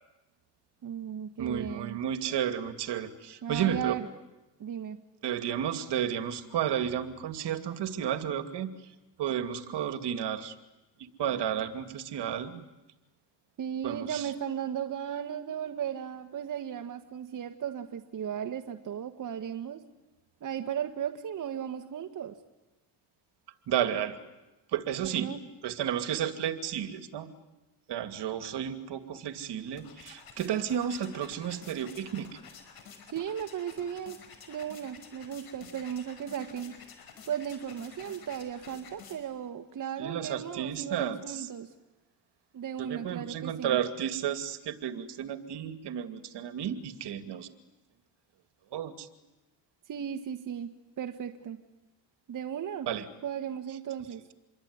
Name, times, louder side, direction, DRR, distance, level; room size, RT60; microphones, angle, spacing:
voice 1, 0.8-2.0 3.4-4.1 4.6-5.0 13.6-19.8 20.4-22.4 25.0-25.4 33.1-34.2 34.5-36.7 37.3-41.7 42.5-43.8 49.9-50.7 51.0-51.6 52.3-52.9 53.2-54.2, right 9 dB, 45° right, 6 dB, 1.6 m, -36 dB
voice 2, 1.4-3.9 5.2-8.7 9.2-10.5 11.0-12.6 13.8-14.3 23.7-24.2 24.7-25.3 25.6-27.3 27.9-32.3 40.0-41.5 42.8-47.5 48.7-49.1 52.9-53.0, right 9 dB, 60° right, 9 dB, 2.5 m, -32 dB
sound 1, 29.4-39.5, left 6 dB, 50° left, 5.5 m, -51 dB
27.0 x 22.5 x 9.6 m, 1.1 s
cardioid pair, 115°, 45 cm